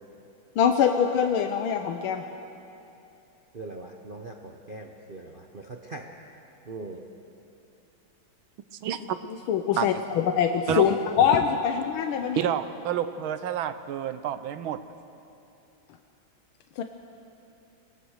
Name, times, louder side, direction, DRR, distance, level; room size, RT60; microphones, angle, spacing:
voice 1, 0.6-2.2 9.5-12.4 16.8-16.9, left 8 dB, 85° left, 5 dB, 1.6 m, -23 dB
voice 2, 3.5-6.0 6.7-7.0, right 3 dB, 40° right, 2 dB, 0.8 m, -41 dB
voice 3, 8.7-9.2 9.8-9.9 10.7-10.8 12.4-14.8, right 10 dB, 85° right, 11 dB, 1.6 m, -29 dB
23.0 x 17.5 x 6.5 m, 2.8 s
omnidirectional pair, 2.2 m